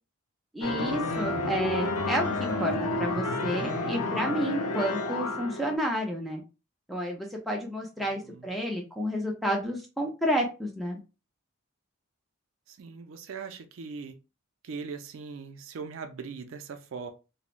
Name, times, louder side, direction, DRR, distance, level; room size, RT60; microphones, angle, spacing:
voice 1, 0.5-2.7 3.0-6.4 6.9-11.0, equal, ahead, 0 dB, 0.5 m, -30 dB
sound 1, 0.6-5.8, left 2 dB, 90° left, 0.5 m, -30 dB
voice 2, 1.1-1.7 8.0-8.5 12.7-14.1 14.6-17.1, right 5 dB, 60° right, 7 dB, 0.4 m, -40 dB
3.0 x 2.1 x 2.4 m, 0.30 s
head